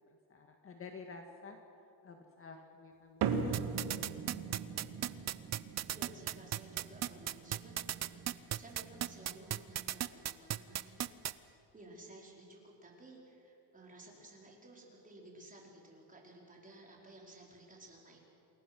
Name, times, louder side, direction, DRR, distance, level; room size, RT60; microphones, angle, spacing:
voice 1, 0.0-1.6 2.0-3.4 3.7-3.9 4.2-4.7, left 4 dB, 30° left, 4 dB, 1.8 m, -52 dB
sound 1, 3.2-9.9, right 6 dB, 60° right, 2.1 m, -41 dB
sound 2, 3.5-11.3, right 12 dB, 35° right, 0.7 m, -35 dB
voice 2, 5.9-18.2, right 1 dB, 20° right, -2 dB, 4.9 m, -56 dB
28.5 x 21.0 x 6.2 m, 2.7 s
cardioid pair, 135°, 44 cm